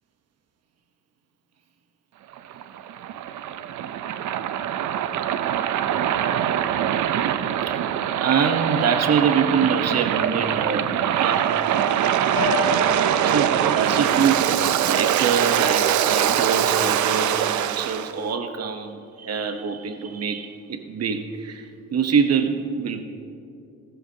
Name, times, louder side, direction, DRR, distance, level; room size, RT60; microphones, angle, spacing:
Waves surf, 2.3-18.1, right 10 dB, 75° right, 0.7 m, -23 dB
voice 1, 8.2-11.5 12.6-12.7 13.2-23.0, right 6 dB, 55° right, 7 dB, 1.0 m, -25 dB
Piano, 12.4-14.3, left 4 dB, 40° left, 1.9 m, -29 dB
24.0 x 13.5 x 2.8 m, 2.5 s
cardioid pair, 90°, 30 cm